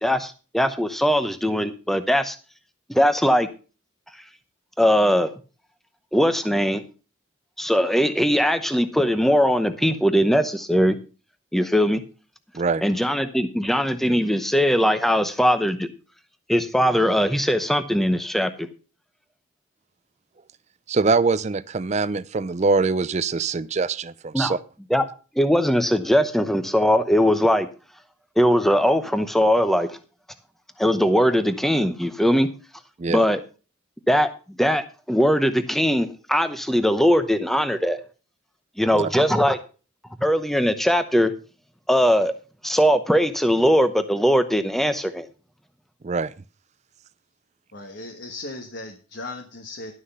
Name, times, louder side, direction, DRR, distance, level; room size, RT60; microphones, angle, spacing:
voice 1, 0.0-2.4 2.9-3.5 4.1-4.2 4.8-5.3 6.1-6.8 7.6-11.0 11.5-12.0 12.8-15.9 16.5-18.7 24.3-24.5 24.9-25.0 25.3-27.7 28.4-30.0 30.8-32.5 33.1-33.4 34.1-38.0 38.8-39.6 40.2-41.3 41.9-42.3 42.6-45.3, equal, ahead, 10 dB, 0.7 m, -20 dB
voice 2, 20.9-24.6 33.0-33.2 38.9-39.1 46.0-46.3, right 4 dB, 35° right, 16 dB, 0.4 m, -23 dB
voice 3, 47.7-49.9, left 2 dB, 55° left, 2 dB, 1.4 m, -37 dB
11.5 x 6.4 x 5.5 m, 0.35 s
head